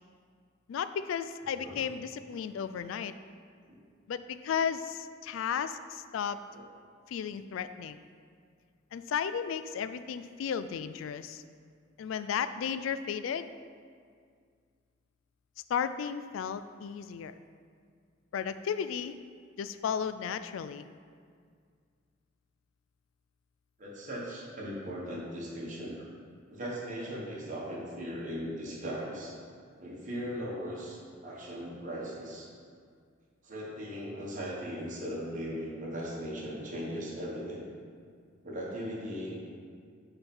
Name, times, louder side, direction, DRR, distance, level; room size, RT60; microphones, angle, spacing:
voice 1, 0.7-3.1 4.1-6.4 7.1-8.0 8.9-11.4 12.0-13.5 15.7-17.3 18.3-19.1 19.6-20.9, left 7 dB, 75° left, 12 dB, 0.3 m, -34 dB
voice 2, 23.8-26.0 26.5-29.3 29.8-32.5 33.4-37.7 38.4-39.4, equal, 40° right, -5 dB, 1.5 m, -38 dB
5.3 x 4.5 x 5.5 m, 2.1 s
head